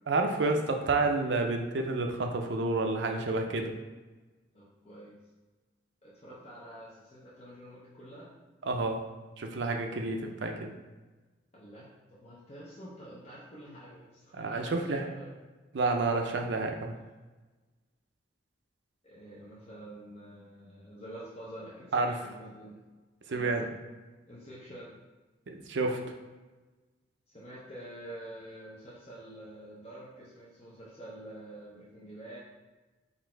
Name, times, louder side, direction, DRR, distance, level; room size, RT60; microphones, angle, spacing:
voice 1, 0.1-3.7 8.6-9.0 9.4-10.7 14.3-15.1 15.7-16.9 21.9-22.2 23.3-23.7 25.5-26.0, right 3 dB, 70° right, 4 dB, 0.5 m, -29 dB
voice 2, 4.5-5.1 6.0-8.3 11.5-15.3 19.0-22.8 23.2-23.5 24.3-25.0 27.3-32.4, right 1 dB, 35° left, -7 dB, 0.7 m, -47 dB
4.1 x 2.6 x 4.4 m, 1.2 s
head